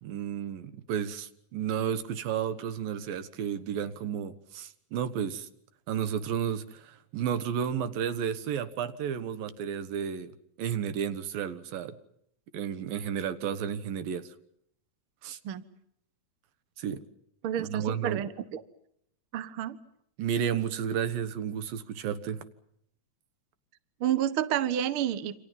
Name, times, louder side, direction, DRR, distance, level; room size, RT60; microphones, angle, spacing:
voice 1, 0.0-5.5 5.9-10.3 10.6-12.0 12.5-14.3 15.2-15.4 16.8-17.0 17.6-18.2 20.2-22.4, right 8 dB, 85° right, 12 dB, 3.2 m, -32 dB
voice 2, 17.4-18.6 19.3-19.8 24.0-25.4, right 10 dB, 55° right, 13 dB, 1.5 m, -30 dB
29.0 x 26.5 x 5.4 m, 0.70 s
omnidirectional pair, 4.0 m